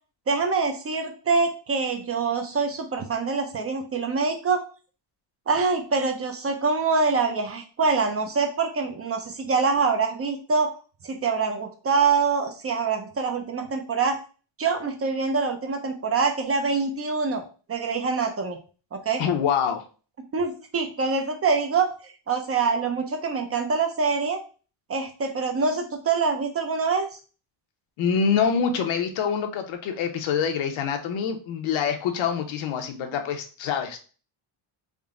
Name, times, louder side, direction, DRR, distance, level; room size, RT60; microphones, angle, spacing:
voice 1, 0.3-4.6 5.5-10.7 11.0-14.2 14.6-17.4 17.7-18.6 18.9-19.2 20.3-24.4 24.9-27.1, right 4 dB, 30° right, 5 dB, 0.5 m, -25 dB
voice 2, 19.2-19.8 28.0-34.0, left 7 dB, 75° left, 6 dB, 0.8 m, -25 dB
3.7 x 2.2 x 3.6 m, 0.37 s
cardioid pair, 140°, 48 cm